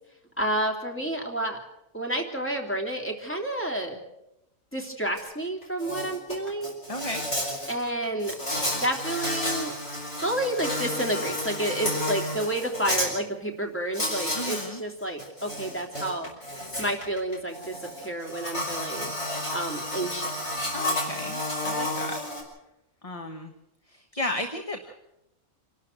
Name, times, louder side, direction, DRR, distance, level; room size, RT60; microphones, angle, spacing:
voice 1, 0.4-1.6 1.9-4.0 4.7-6.7 7.7-8.3 8.7-9.7 10.2-16.3 16.8-19.1 19.5-20.4, right 1 dB, 10° left, 1 dB, 3.2 m, -30 dB
Insect, 5.2-5.3 5.6-13.1 13.9-14.7 15.0-22.4, left 1 dB, 45° left, 5.6 m, -31 dB
voice 2, 6.9-7.2 14.3-14.8 20.7-22.2 23.0-23.5 23.9-24.9, left 1 dB, 25° left, 5 dB, 1.3 m, -34 dB
27.0 x 12.5 x 7.9 m, 0.88 s
omnidirectional pair, 1.6 m